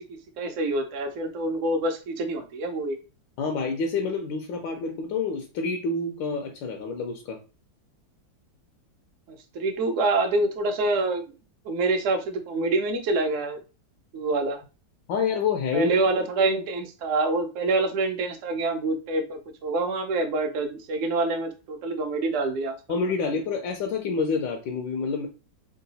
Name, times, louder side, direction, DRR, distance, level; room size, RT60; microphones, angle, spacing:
voice 1, 0.4-3.0 9.3-11.2 11.6-13.6 14.1-14.6 15.7-22.8, right 2 dB, 60° right, 5 dB, 0.8 m, -26 dB
voice 2, 3.4-7.4 15.1-16.0 22.9-25.3, left 4 dB, 80° left, 3 dB, 1.3 m, -28 dB
3.8 x 2.3 x 4.0 m, 0.32 s
omnidirectional pair, 2.1 m